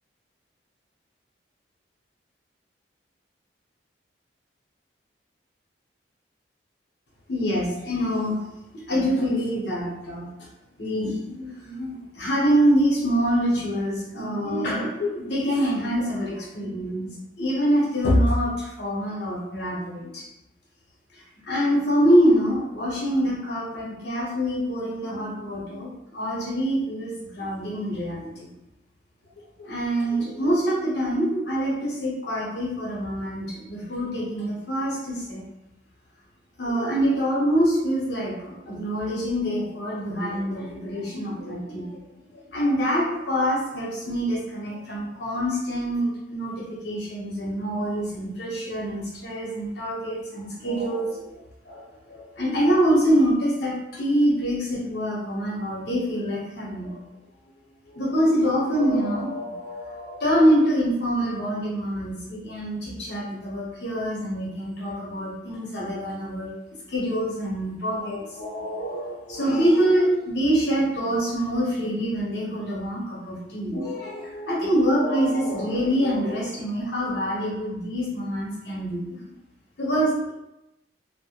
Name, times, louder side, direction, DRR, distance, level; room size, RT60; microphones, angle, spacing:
voice 1, 7.3-8.4 8.9-10.3 10.8-17.1 17.4-20.2 21.1-28.5 29.6-35.4 36.6-42.0 42.3-51.3 51.7-57.0 57.9-66.5 66.9-79.0 79.8-80.3, equal, 65° left, -4 dB, 0.8 m, -25 dB
2.1 x 2.1 x 2.9 m, 0.89 s
head